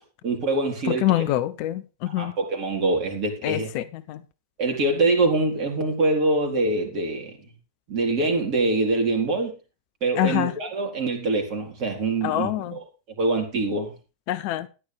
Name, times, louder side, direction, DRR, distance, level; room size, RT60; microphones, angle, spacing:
voice 1, 0.2-1.1 2.1-3.7 4.6-7.3 7.9-9.5 10.0-12.8 13.2-13.9, right 2 dB, 40° right, 3.9 m, -24 dB
voice 2, 0.9-2.3 3.4-4.2 10.2-10.5 12.2-12.8 14.3-14.7, left 14 dB, 45° left, 0.8 m, -25 dB
13.5 x 10.5 x 3.4 m
figure-of-eight pair, 90°, 0 cm